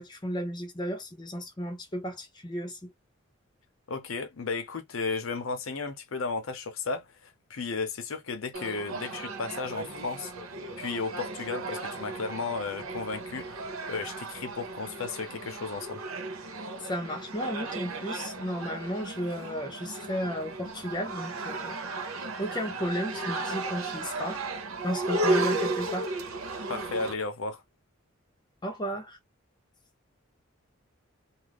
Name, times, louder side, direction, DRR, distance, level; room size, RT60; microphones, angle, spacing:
voice 1, 0.0-2.9 16.8-21.8 22.4-24.4 24.8-26.2 28.6-29.2, equal, 20° left, 0.7 m, -34 dB
voice 2, 3.9-10.3 10.8-13.6 13.9-16.0 26.7-27.6, left 4 dB, 75° left, 0.7 m, -34 dB
sound 1, 8.5-27.1, right 2 dB, 90° right, 0.9 m, -34 dB
2.5 x 2.1 x 3.4 m
head